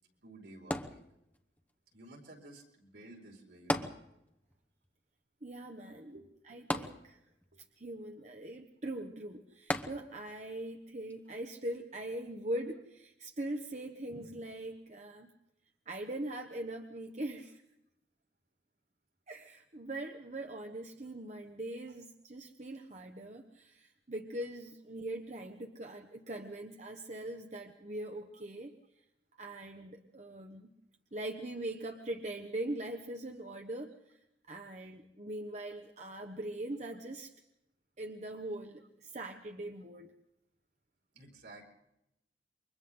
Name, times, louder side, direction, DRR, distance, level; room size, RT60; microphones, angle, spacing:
voice 1, 0.2-1.0 1.9-3.9 6.1-6.3 41.1-41.6, right 2 dB, 75° right, 0 dB, 5.1 m, -53 dB
sound 1, 0.7-1.6 3.7-4.6 4.8-4.9 6.7-7.5 9.7-10.4 11.1-11.2, left 1 dB, 10° left, 0.9 m, -36 dB
voice 2, 5.4-6.2 6.4-7.2 7.8-15.3 15.9-17.6 19.3-28.7 29.4-30.7 31.1-34.2 34.5-37.3 38.0-40.1, right 1 dB, 40° right, 4 dB, 1.2 m, -41 dB
29.0 x 24.5 x 3.9 m, 0.86 s
head